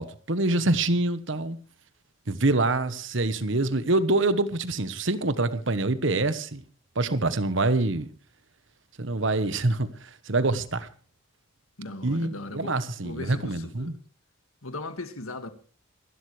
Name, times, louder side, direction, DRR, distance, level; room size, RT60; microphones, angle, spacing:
voice 1, 0.0-1.6 2.3-6.6 6.9-8.1 9.0-10.9 12.0-13.9, right 2 dB, 65° right, 1.2 m, -25 dB
voice 2, 11.8-13.9 14.6-15.5, left 2 dB, 90° left, 2.0 m, -38 dB
26.0 x 12.5 x 3.3 m
head